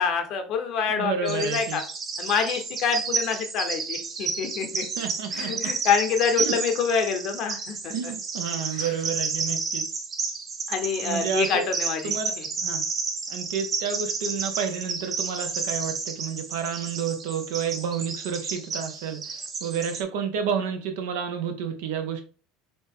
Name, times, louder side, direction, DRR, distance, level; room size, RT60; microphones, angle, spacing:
voice 1, 0.0-1.8 2.2-4.9 5.3-8.1 8.8-8.9 10.7-12.5, left 6 dB, 55° left, 0.8 m, -26 dB
voice 2, 0.9-1.8 4.7-5.7 6.4-6.6 7.9-9.9 11.0-11.7 12.0-12.3 12.6-12.9 13.3-22.3, right 7 dB, 80° right, 0.7 m, -30 dB
Bird vocalization bird call bird song, 1.3-20.0, right 4 dB, 35° right, 0.7 m, -31 dB
4.0 x 2.2 x 3.6 m
supercardioid pair, 105°, 0 cm